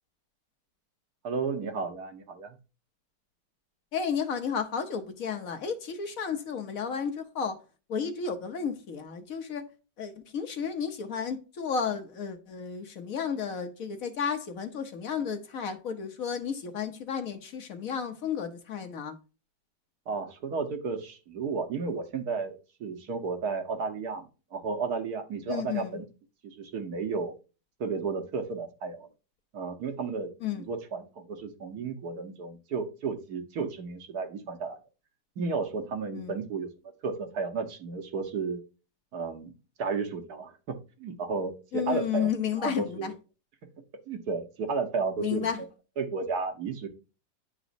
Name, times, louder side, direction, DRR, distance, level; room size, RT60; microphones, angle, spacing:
voice 1, 1.2-2.6 20.1-22.5 22.8-26.0 26.4-27.3 27.8-29.1 29.5-30.3 30.6-34.8 35.4-36.7 37.0-38.6 39.1-39.5 39.8-42.3 42.6-43.1 44.1-45.5 46.0-46.9, right 4 dB, 65° right, 1.6 m, -33 dB
voice 2, 3.9-7.6 7.9-9.6 10.0-19.1 25.5-26.0 30.4-30.6 36.1-36.3 41.7-43.1 45.2-45.6, left 7 dB, 60° left, 1.2 m, -32 dB
10.5 x 4.1 x 2.6 m
omnidirectional pair, 1.8 m